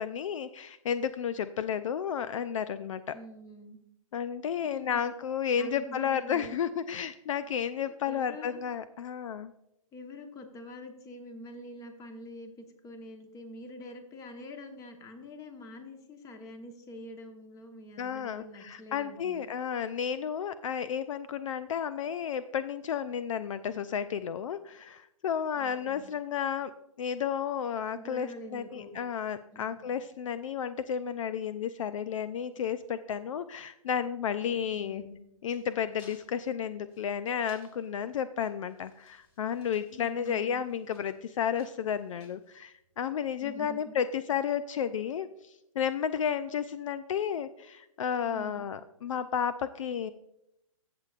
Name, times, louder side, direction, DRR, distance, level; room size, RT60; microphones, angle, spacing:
voice 1, 0.0-3.2 4.1-9.5 18.0-26.7 27.0-35.0 35.4-50.1, left 8 dB, 60° left, 14 dB, 0.4 m, -32 dB
voice 2, 3.1-3.8 4.6-5.1 5.6-6.6 7.8-8.6 9.9-19.4 25.6-26.1 27.9-28.9 29.5-29.9 34.5-35.2 39.9-40.6 43.4-43.9 48.3-48.7, left 1 dB, 20° left, 6 dB, 1.2 m, -46 dB
sound 1, 34.9-43.1, left 3 dB, 45° left, 3.3 m, -62 dB
15.5 x 6.8 x 2.5 m, 0.83 s
hypercardioid pair, 135°, 18 cm